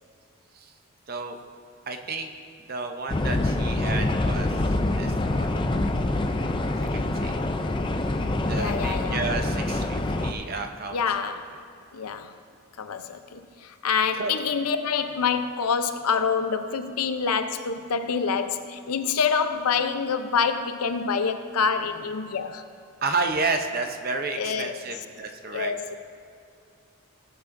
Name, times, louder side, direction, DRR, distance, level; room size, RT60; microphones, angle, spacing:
voice 1, 1.9-2.3 2.7-5.6 6.9-7.3 8.4-11.3 14.2-14.4 23.0-26.0, right 3 dB, 40° right, 0.6 m, -31 dB
sound 1, 3.1-10.3, left 2 dB, 20° left, 0.4 m, -26 dB
voice 2, 8.5-9.2 10.9-11.4 11.9-12.3 12.8-22.6 24.3-24.8 25.5-26.0, left 6 dB, 85° left, 0.6 m, -26 dB
16.5 x 8.4 x 2.6 m
head